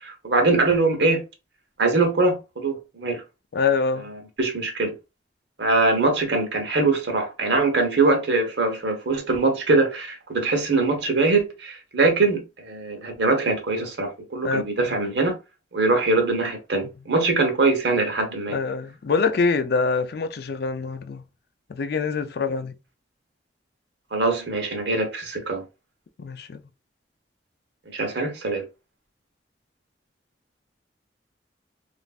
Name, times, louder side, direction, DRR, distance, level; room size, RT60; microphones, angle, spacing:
voice 1, 0.0-1.2 1.8-3.2 4.0-4.9 5.6-15.4 15.7-18.6 24.1-25.6 27.9-28.6, right 3 dB, 85° right, 0.9 m, -22 dB
voice 2, 3.5-4.1 14.4-15.0 16.8-16.9 18.5-21.2 21.7-22.7 26.2-26.6, left 4 dB, 65° left, 0.4 m, -25 dB
3.1 x 2.5 x 2.4 m
head